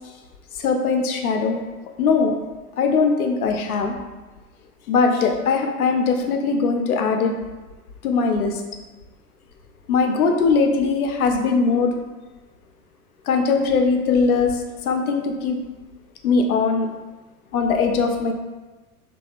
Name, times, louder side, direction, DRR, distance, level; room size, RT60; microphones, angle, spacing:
voice 1, 0.6-1.6 2.0-2.4 2.8-4.0 4.9-7.3 8.0-8.6 9.9-12.0 13.3-15.6 16.2-16.9 17.5-18.3, left 4 dB, 70° left, 3 dB, 0.5 m, -20 dB
2.7 x 2.2 x 2.4 m, 1.2 s
figure-of-eight pair, 90°, 46 cm